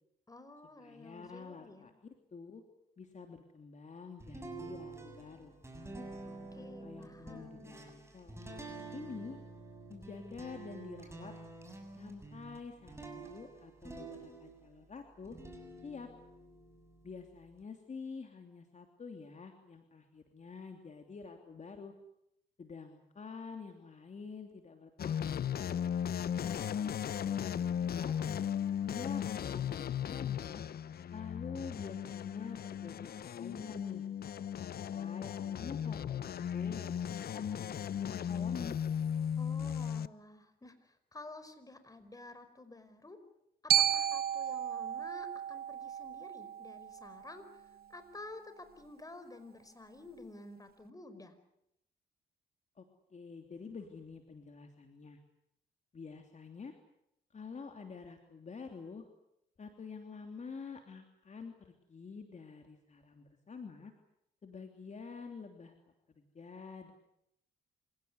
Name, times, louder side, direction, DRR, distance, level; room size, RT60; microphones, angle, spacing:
voice 1, 0.3-1.9 6.2-7.8 26.4-27.9 39.3-43.2 43.6-51.4, left 2 dB, 20° left, 10 dB, 4.9 m, -52 dB
voice 2, 0.8-1.9 2.3-2.6 3.0-5.5 6.5-8.6 8.9-9.4 9.9-11.4 12.0-15.4 15.8-16.1 17.0-21.9 22.6-25.9 26.8-28.1 28.8-30.6 31.1-33.1 33.3-34.0 34.5-37.0 37.3-38.8 52.8-52.9 53.1-55.2 55.9-56.8 57.3-59.0 59.6-63.9 64.4-65.8 66.2-66.9, left 5 dB, 40° left, 4 dB, 3.1 m, -48 dB
sound 1, 4.2-14.8 15.2-17.6, right 2 dB, 15° right, 7.5 m, -48 dB
sound 2, 25.0-40.1, left 9 dB, 60° left, 0.9 m, -36 dB
Glockenspiel, 43.7-47.8, right 10 dB, 60° right, 0.9 m, -33 dB
27.0 x 17.0 x 9.6 m, 0.80 s
cardioid pair, 70°, 18 cm